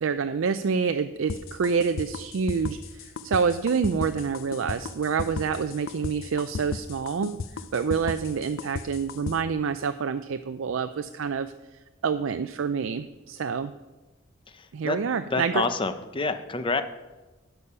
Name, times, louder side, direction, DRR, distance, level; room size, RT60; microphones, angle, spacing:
voice 1, 0.0-11.5 12.0-13.7 14.7-15.6, right 6 dB, 70° right, 10 dB, 0.4 m, -27 dB
sound 1, 1.3-9.4, left 4 dB, 70° left, 0.5 m, -34 dB
voice 2, 14.5-15.0 15.2-16.8, left 3 dB, 25° left, 10 dB, 0.6 m, -28 dB
11.5 x 6.9 x 5.6 m, 1.1 s
head